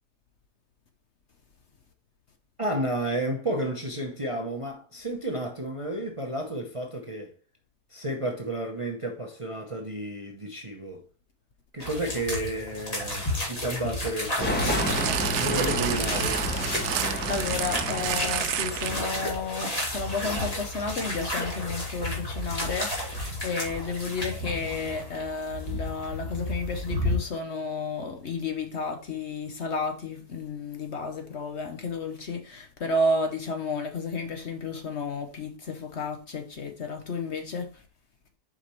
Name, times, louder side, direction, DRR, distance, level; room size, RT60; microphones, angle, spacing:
voice 1, 2.6-7.3 7.9-11.0 11.7-14.8 15.3-16.5, right 1 dB, 30° right, 0.7 m, -31 dB
sound 1, 11.8-27.2, left 1 dB, 25° left, 2.2 m, -32 dB
sound 2, 14.4-19.3, equal, 10° left, 0.8 m, -30 dB
sound 3, 14.8-19.2 19.9-20.0, right 11 dB, 80° right, 1.1 m, -31 dB
voice 2, 16.5-37.8, left 3 dB, 55° left, 1.0 m, -32 dB
7.2 x 5.1 x 3.1 m
omnidirectional pair, 1.6 m